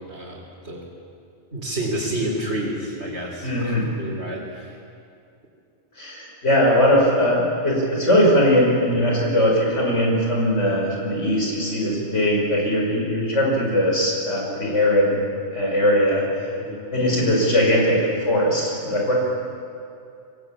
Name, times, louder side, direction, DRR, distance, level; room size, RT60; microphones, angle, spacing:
voice 1, 0.1-0.8 1.5-4.8 16.6-16.8, right 1 dB, 65° right, -6 dB, 3.8 m, -29 dB
voice 2, 3.4-3.9 6.0-15.2 15.5-16.5 16.9-19.1, equal, 75° left, -2 dB, 5.7 m, -20 dB
25.0 x 17.5 x 8.8 m, 2.5 s
omnidirectional pair, 1.2 m